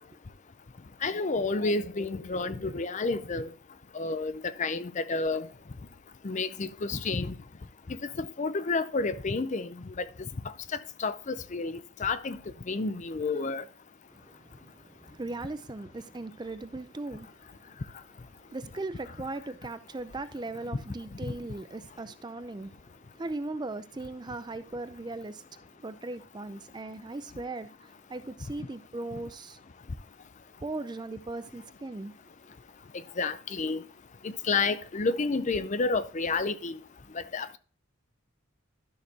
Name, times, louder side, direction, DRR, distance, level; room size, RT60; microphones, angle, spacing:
voice 1, 1.0-3.5 3.9-4.3 4.6-5.5 6.2-7.3 7.9-9.7 10.0-10.1 11.0-12.4 12.7-13.6 33.2-33.8 34.2-36.8 37.3-37.6, left 3 dB, 35° left, 0.5 m, -30 dB
voice 2, 14.1-17.7 18.5-29.6 30.6-32.1, right 2 dB, 20° right, 0.4 m, -39 dB
12.5 x 6.5 x 2.8 m
head